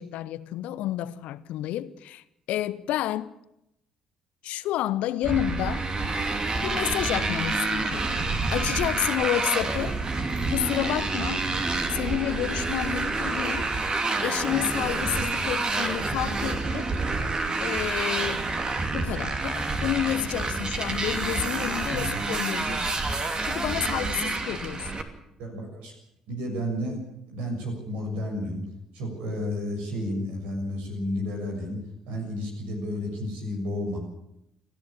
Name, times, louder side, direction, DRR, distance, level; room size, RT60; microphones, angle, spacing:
voice 1, 0.0-3.4 4.4-5.9 6.6-8.1 8.5-10.0 10.5-11.5 11.9-13.7 14.2-16.9 17.6-18.4 18.9-22.9 23.4-24.9, left 13 dB, 65° left, 0.9 m, -30 dB
Motorcycle, 5.2-25.0, right 3 dB, 35° right, 2.8 m, -28 dB
voice 2, 21.8-22.2 25.4-25.9 26.3-27.0 27.3-28.6 28.9-31.8 32.1-34.0, left 1 dB, 70° right, 6.7 m, -32 dB
29.5 x 10.5 x 8.5 m
figure-of-eight pair, 45°, 2 cm